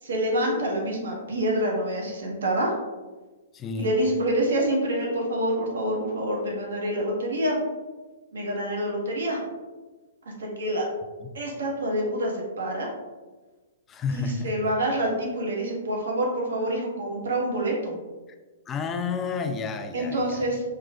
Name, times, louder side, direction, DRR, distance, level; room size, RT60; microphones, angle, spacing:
voice 1, 0.0-2.7 3.8-7.6 8.3-9.4 10.4-10.8 11.3-12.9 14.1-18.0 19.9-20.6, right 1 dB, 70° right, -1 dB, 0.9 m, -27 dB
voice 2, 3.5-3.9 11.2-11.3 13.9-14.6 18.7-20.6, left 5 dB, 20° left, 7 dB, 0.3 m, -31 dB
3.6 x 2.7 x 2.2 m, 1.2 s
figure-of-eight pair, 115°, 0 cm